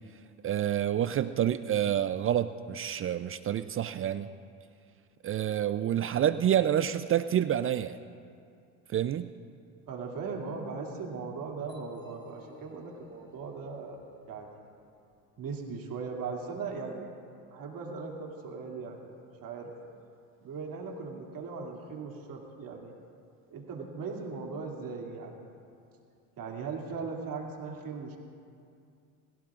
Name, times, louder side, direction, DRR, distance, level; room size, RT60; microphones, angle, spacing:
voice 1, 0.4-4.3 5.2-8.0 8.9-9.3, right 10 dB, 35° right, 13 dB, 0.4 m, -28 dB
voice 2, 9.9-14.0 14.3-14.6 15.4-17.1 17.5-19.1 19.4-19.7 20.4-22.9 23.5-25.4 26.4-28.2, right 4 dB, 55° right, 0 dB, 2.6 m, -38 dB
sound 1, 11.7-15.4, left 1 dB, 10° left, 1.9 m, -54 dB
21.5 x 16.5 x 2.5 m, 2.4 s
supercardioid pair, 85°, 40 cm